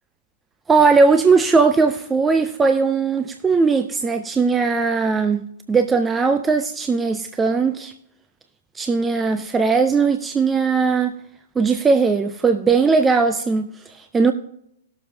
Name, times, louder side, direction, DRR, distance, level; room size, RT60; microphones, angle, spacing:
voice 1, 0.7-5.4 5.7-7.9 8.7-11.1 11.6-14.3, right 4 dB, 15° right, 0.5 m, -18 dB
19.0 x 6.9 x 2.8 m
hypercardioid pair, 120°, 0 cm